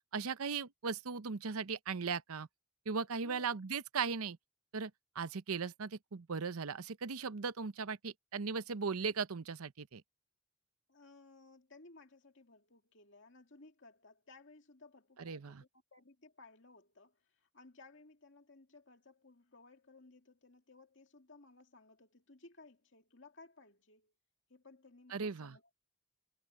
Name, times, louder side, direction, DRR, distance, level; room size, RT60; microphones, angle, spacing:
voice 1, 0.1-2.5 2.9-4.4 4.7-10.0 15.2-15.6 25.1-25.6, right 5 dB, 85° right, 0.7 m, -38 dB
voice 2, 10.9-24.1 24.5-25.8, left 3 dB, 55° left, 2.5 m, -59 dB
head